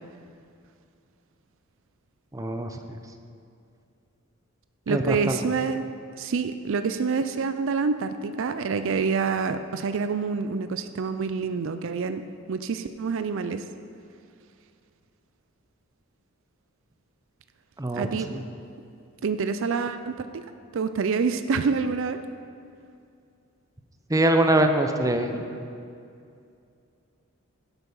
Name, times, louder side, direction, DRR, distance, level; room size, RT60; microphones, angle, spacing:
voice 1, 2.3-3.0 4.9-5.4 17.8-18.1 24.1-25.4, right 1 dB, 15° right, 6 dB, 0.7 m, -23 dB
voice 2, 4.9-5.9 6.2-12.2 12.5-13.6 17.9-18.3 19.2-20.4 20.7-22.2, right 5 dB, 65° right, 10 dB, 0.4 m, -27 dB
11.5 x 8.2 x 5.5 m, 2.4 s
head